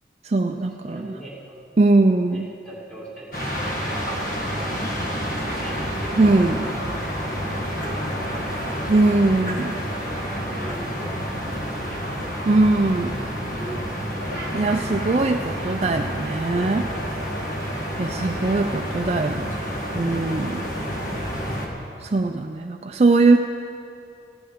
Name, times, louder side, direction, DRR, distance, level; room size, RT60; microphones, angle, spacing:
voice 1, 0.2-1.1 1.8-2.5 4.7-5.1 6.2-6.6 8.9-9.8 12.5-13.2 14.5-16.9 18.0-19.5 19.9-20.7 22.0-23.4, right 2 dB, 35° right, 4 dB, 0.4 m, -20 dB
voice 2, 0.9-1.6 2.2-4.5 5.6-5.8 6.0-6.9 7.6-8.8 10.4-12.2 13.3-14.4 17.7-18.1, right 1 dB, 5° left, -6 dB, 2.3 m, -41 dB
sound 1, 3.3-21.7, equal, 50° left, 1.8 m, -29 dB
14.0 x 6.7 x 9.4 m, 2.6 s
head